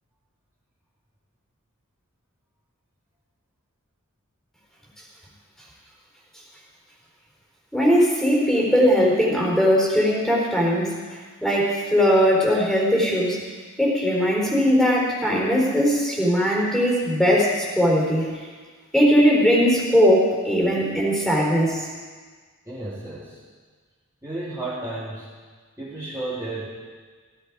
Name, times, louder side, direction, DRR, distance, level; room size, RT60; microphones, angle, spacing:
voice 1, 7.7-10.9 11.4-13.4 13.8-18.3 18.9-21.9, equal, ahead, -3 dB, 4.3 m, -19 dB
voice 2, 22.6-23.4 24.2-25.4 25.8-26.7, right 2 dB, 15° right, -10 dB, 3.4 m, -32 dB
17.0 x 16.0 x 4.9 m, 1.5 s
head